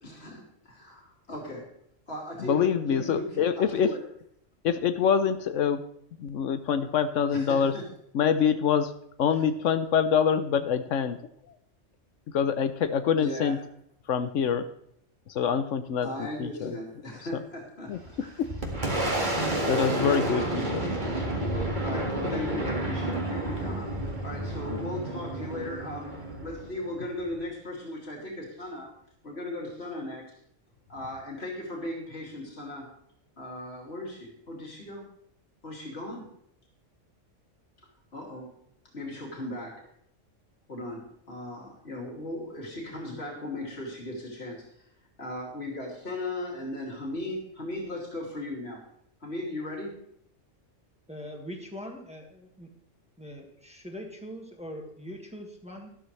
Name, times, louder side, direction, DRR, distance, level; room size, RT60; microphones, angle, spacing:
voice 1, 0.0-1.7 2.1-4.0 7.3-7.8 13.2-13.6 16.0-17.9 18.2-18.3 20.0-21.0 21.8-26.1 26.4-28.9 29.2-30.3 30.9-32.9 33.4-35.1 35.6-36.3 38.1-38.6 38.9-39.8 40.7-44.9 45.2-48.8 49.2-50.0, left 1 dB, 55° left, -2 dB, 3.0 m, -37 dB
voice 2, 2.4-3.9 4.6-5.8 6.2-7.7 8.1-8.9 9.2-11.2 12.3-13.6 14.1-14.6 15.3-16.1 16.4-16.7 17.9-18.0 18.4-18.5 19.7-20.9 24.7-24.8, left 7 dB, 80° left, 10 dB, 1.1 m, -25 dB
Boom, 17.9-27.4, right 1 dB, 40° right, 2.1 m, -30 dB
voice 3, 51.1-52.7 53.2-55.9, equal, 5° right, 1 dB, 1.7 m, -42 dB
12.5 x 12.5 x 3.3 m, 0.71 s
omnidirectional pair, 1.3 m